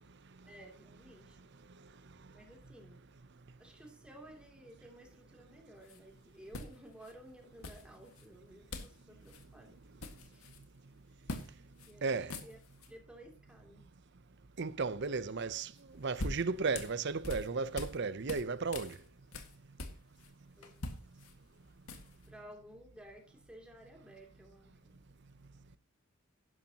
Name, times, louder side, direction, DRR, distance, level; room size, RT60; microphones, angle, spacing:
voice 1, 0.4-1.4 2.3-3.1 3.6-9.8 10.3-10.5 11.8-12.6 12.9-13.8 20.6-20.8 22.3-25.0, right 1 dB, 5° right, 2.8 m, -55 dB
sound 1, 5.8-6.0 6.5-7.1 7.6-8.3 8.7-9.0 9.3-9.4 9.8-10.6 11.3-11.5 11.8-11.9 12.2-12.9 15.8-18.0 18.3-20.3 20.6-22.3, left 2 dB, 85° left, 1.8 m, -44 dB
voice 2, 12.0-12.4 14.6-19.0, right 4 dB, 55° right, 0.7 m, -34 dB
11.5 x 11.0 x 2.9 m
head